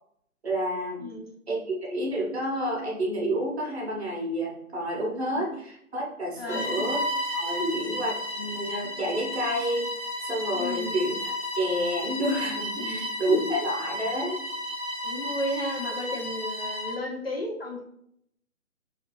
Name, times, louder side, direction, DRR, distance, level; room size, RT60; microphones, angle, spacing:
voice 1, 0.4-1.1 1.5-7.0 7.3-9.9 10.2-11.2 11.5-14.4, right 1 dB, 50° right, -2 dB, 0.7 m, -29 dB
voice 2, 1.0-1.3 5.4-5.5 6.4-6.9 7.6-7.7 10.5-10.9 12.7-13.5 15.0-17.8, left 1 dB, 45° left, 0 dB, 0.5 m, -33 dB
Bowed string instrument, 6.4-17.0, left 1 dB, 20° left, 0.9 m, -33 dB
2.5 x 2.4 x 3.0 m, 0.72 s
hypercardioid pair, 170°, 42 cm